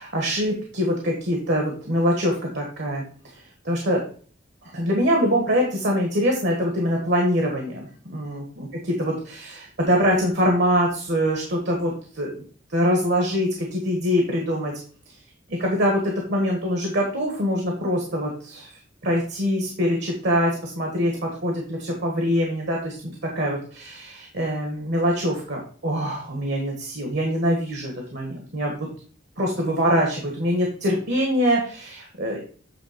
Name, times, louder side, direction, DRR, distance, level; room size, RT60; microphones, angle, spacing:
voice 1, 0.0-3.0 3.6-4.0 4.7-8.7 9.0-12.4 12.7-14.7 15.5-18.7 19.0-28.7 29.4-32.4, equal, 60° right, 0 dB, 1.5 m, -24 dB
8.6 x 3.5 x 5.1 m, 0.43 s
head